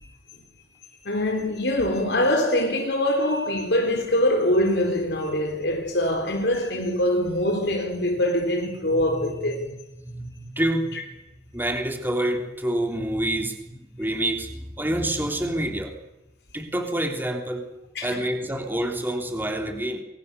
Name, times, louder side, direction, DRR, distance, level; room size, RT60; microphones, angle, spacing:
voice 1, 1.0-9.7 18.0-18.1, left 1 dB, 75° left, 4.0 m, -23 dB
voice 2, 8.9-10.9 11.5-15.9 16.5-17.6 18.0-20.0, right 1 dB, 10° right, 3.3 m, -28 dB
28.5 x 23.5 x 6.9 m
head